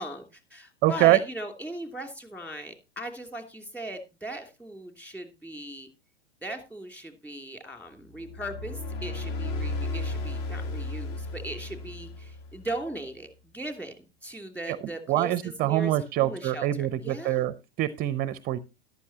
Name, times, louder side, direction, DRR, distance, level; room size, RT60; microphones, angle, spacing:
voice 1, 0.0-5.9 6.4-17.4, right 1 dB, 5° left, 6 dB, 2.8 m, -38 dB
voice 2, 0.8-1.2 14.7-14.8 15.1-18.6, right 14 dB, 25° right, 16 dB, 0.6 m, -25 dB
sound 1, 8.1-12.8, left 2 dB, 40° left, 1.9 m, -34 dB
14.0 x 11.5 x 2.8 m, 0.27 s
hypercardioid pair, 105°, 33 cm